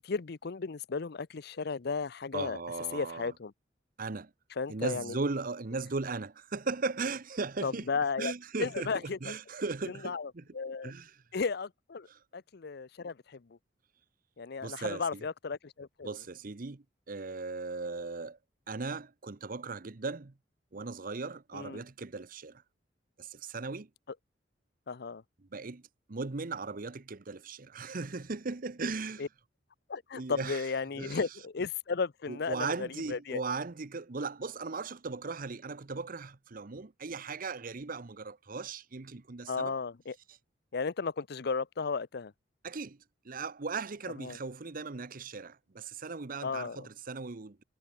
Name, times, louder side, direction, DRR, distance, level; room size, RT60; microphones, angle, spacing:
voice 1, 0.0-2.6 2.9-3.5 4.6-5.2 7.6-8.3 8.6-9.2 10.0-10.9 11.3-12.1 12.3-13.6 14.4-16.1 21.5-21.8 24.9-25.2 29.2-29.3 29.9-33.4 39.5-40.1 40.7-42.3 44.2-44.4 46.4-46.9, left 4 dB, 60° left, 0.6 m, -34 dB
voice 2, 2.3-3.3 4.0-4.3 4.7-7.9 8.2-10.4 10.8-11.2 12.1-12.2 14.6-15.2 16.0-18.4 18.7-20.3 20.7-22.6 23.2-23.9 25.5-25.8 26.1-29.3 30.1-30.7 31.0-31.2 32.3-39.8 42.6-43.0 43.2-47.6, right 4 dB, 50° right, 0.9 m, -37 dB
head